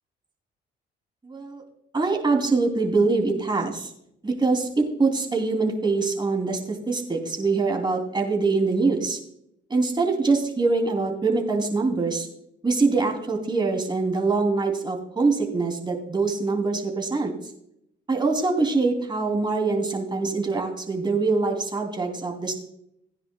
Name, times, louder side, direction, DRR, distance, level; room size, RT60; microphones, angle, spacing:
voice 1, 1.2-1.6 1.9-3.9 4.2-9.2 9.7-12.3 12.6-17.3 18.1-22.5, right 3 dB, 20° right, 2 dB, 2.9 m, -24 dB
16.5 x 9.7 x 2.3 m, 0.75 s
cardioid pair, 90°, 20 cm